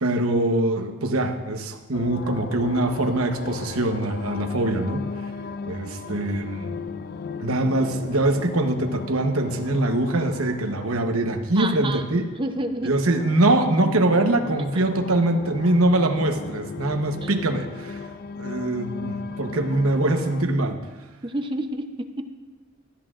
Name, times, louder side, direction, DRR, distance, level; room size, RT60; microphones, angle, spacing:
voice 1, 0.0-5.0 5.7-6.8 7.4-12.3 12.8-18.1 18.4-20.8, right 2 dB, 85° right, 5 dB, 1.1 m, -23 dB
sound 1, 1.9-20.4, left 5 dB, 45° left, 0.4 m, -36 dB
voice 2, 11.6-12.0 12.4-12.9 17.2-17.3 21.2-22.2, right 1 dB, 25° right, 6 dB, 0.7 m, -29 dB
17.0 x 13.0 x 2.5 m, 1.3 s
head